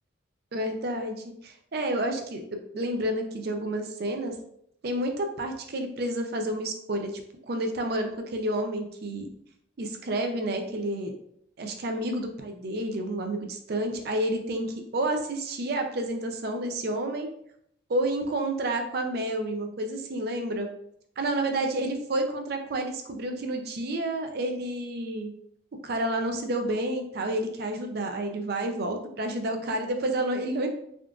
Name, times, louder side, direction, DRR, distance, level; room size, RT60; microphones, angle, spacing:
voice 1, 0.5-1.2 1.4-4.4 4.8-7.2 7.5-9.3 9.8-11.1 11.6-17.3 17.9-20.7 21.2-25.3 25.8-30.7, right 1 dB, 50° right, 5 dB, 0.4 m, -30 dB
3.6 x 2.4 x 2.3 m, 0.71 s
head